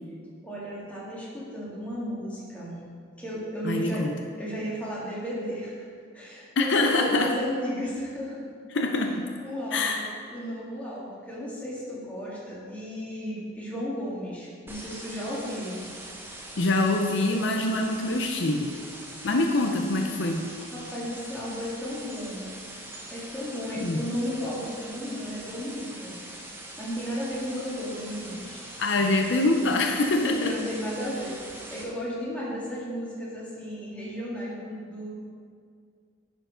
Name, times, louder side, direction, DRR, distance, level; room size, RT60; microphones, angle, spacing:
voice 1, 0.4-2.8 3.2-4.0 4.4-5.9 6.1-8.4 9.4-15.8 20.7-22.5 23.1-26.2 26.5-28.6 30.0-35.1, equal, 5° left, -7 dB, 1.8 m, -34 dB
voice 2, 3.6-4.1 6.6-7.3 8.7-9.2 9.7-10.1 16.6-18.8 19.2-20.5 23.8-24.0 28.8-30.6, left 2 dB, 65° left, 3 dB, 0.6 m, -25 dB
sound 1, 14.7-31.8, right 1 dB, 10° right, 0.8 m, -43 dB
10.0 x 4.5 x 5.0 m, 2.2 s
head